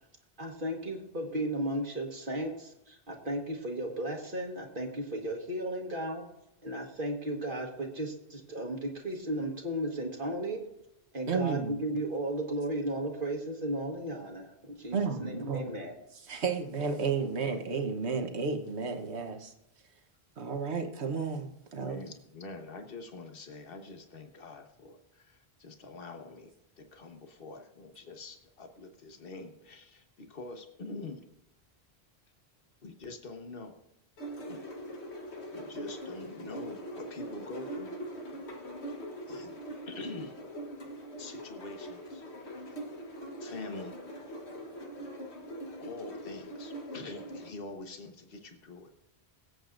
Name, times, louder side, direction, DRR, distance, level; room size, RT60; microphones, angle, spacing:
voice 1, 0.4-6.2 6.6-10.6 11.1-16.0, right 1 dB, 55° right, 1 dB, 1.6 m, -35 dB
voice 2, 11.3-11.8 14.9-15.6 16.2-19.5 20.4-22.0, right 5 dB, 85° right, 6 dB, 1.4 m, -32 dB
voice 3, 21.8-31.2 32.8-33.8 34.5-34.6 35.5-37.9 39.3-39.6 39.9-40.3 41.2-42.2 43.4-44.0 45.8-48.9, left 3 dB, 60° left, 5 dB, 1.4 m, -45 dB
sound 1, 34.2-47.5, equal, 85° left, 1.6 m, -42 dB
23.0 x 8.0 x 2.6 m, 0.87 s
omnidirectional pair, 1.1 m